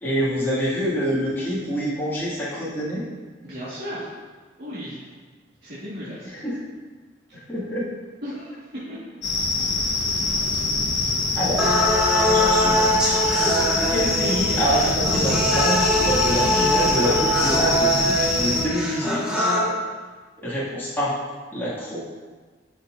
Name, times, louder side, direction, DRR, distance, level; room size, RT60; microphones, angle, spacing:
voice 1, 0.0-3.0 6.2-6.6 7.3-7.9 11.3-11.7 12.1-13.2 13.9-19.5 20.4-21.2 21.5-22.0, equal, 10° left, -10 dB, 2.1 m, -26 dB
voice 2, 3.4-4.1 4.6-5.1 5.6-6.3 7.3-7.4 8.2-9.0 11.0-11.2, equal, 60° right, -11 dB, 1.9 m, -35 dB
country side soundscape with cicadas, 9.2-18.6, left 3 dB, 65° left, 1.1 m, -24 dB
sound 1, 11.6-19.6, equal, 5° right, 1.5 m, -22 dB
11.5 x 5.8 x 2.6 m, 1.4 s
head